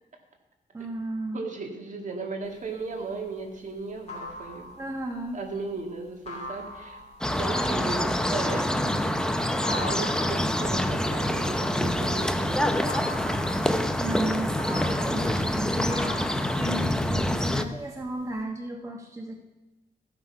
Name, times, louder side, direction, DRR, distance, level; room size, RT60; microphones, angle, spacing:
voice 1, 0.7-1.4 4.8-5.4 7.4-7.9 14.0-16.2 16.6-19.3, right 1 dB, 20° right, 1 dB, 1.2 m, -34 dB
voice 2, 1.3-4.7 5.3-7.0 7.3-9.0 9.2-12.9, right 3 dB, 50° right, 2 dB, 1.9 m, -36 dB
sound 1, 2.6-12.4 12.7-17.4 17.8-18.4, left 2 dB, 40° left, 2.9 m, -41 dB
sound 2, 7.2-17.6, left 1 dB, 5° left, 0.7 m, -26 dB
15.0 x 5.9 x 5.6 m, 1.0 s
cardioid pair, 90°, 16 cm